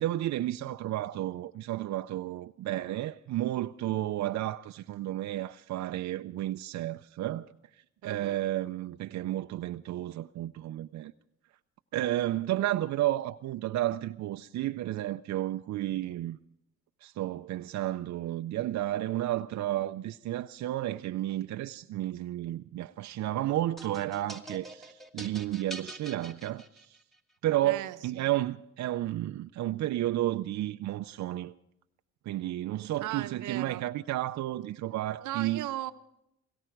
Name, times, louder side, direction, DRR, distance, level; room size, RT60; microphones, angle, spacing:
voice 1, 0.0-7.5 8.0-11.1 11.9-16.4 17.0-27.0 27.4-31.5 32.3-35.7, right 14 dB, 65° right, 0.5 m, -32 dB
voice 2, 8.0-8.5 27.6-28.3 33.0-33.8 35.2-35.9, right 14 dB, 85° right, 0.9 m, -37 dB
sound 1, 23.8-27.1, right 1 dB, ahead, 1.5 m, -45 dB
17.5 x 16.5 x 4.6 m
cardioid pair, 90°, 30 cm